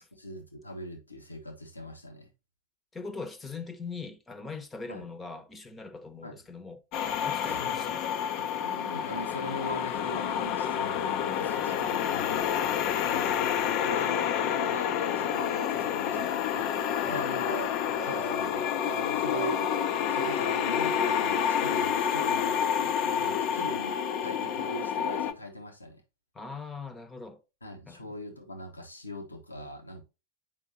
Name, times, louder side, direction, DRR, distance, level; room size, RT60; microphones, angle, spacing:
voice 1, 0.1-2.3 4.9-5.1 6.2-6.4 7.5-7.9 8.6-16.7 17.1-17.7 18.0-23.9 24.2-26.0 27.6-30.0, left 1 dB, 80° left, 1.3 m, -40 dB
voice 2, 2.9-8.2 12.8-13.0 17.0-17.2 23.2-23.6 26.3-27.4 27.9-28.1, left 4 dB, 15° left, 0.9 m, -42 dB
sound 1, 6.9-25.3, left 8 dB, 40° left, 0.6 m, -29 dB
sound 2, 15.3-15.8 16.2-16.3 16.7-17.2 17.5-17.7 18.0-18.5 18.8-19.0 19.3-19.8 20.2-20.3, right 3 dB, 30° right, 0.9 m, -42 dB
7.5 x 5.3 x 2.7 m
figure-of-eight pair, 90°, 0 cm